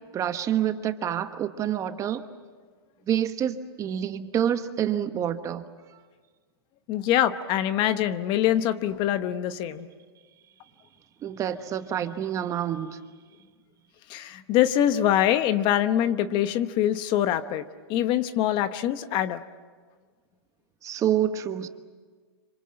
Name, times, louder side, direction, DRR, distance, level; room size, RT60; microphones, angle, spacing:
voice 1, 0.1-2.2 3.1-5.6 11.2-13.0 20.8-21.7, right 10 dB, 25° right, 1.1 m, -27 dB
voice 2, 6.9-9.9 14.1-19.4, left 11 dB, 35° left, 1.0 m, -24 dB
26.5 x 26.0 x 7.7 m
hypercardioid pair, 140°, 13 cm